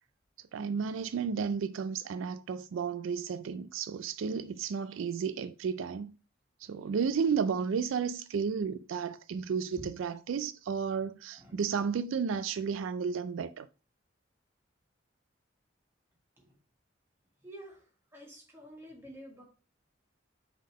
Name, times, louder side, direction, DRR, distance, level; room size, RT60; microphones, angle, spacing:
voice 1, 0.5-6.1 6.6-13.7, right 6 dB, 80° right, 0.3 m, -33 dB
voice 2, 17.4-17.9 18.1-19.4, equal, 10° right, 1.6 m, -49 dB
5.5 x 3.7 x 4.8 m
head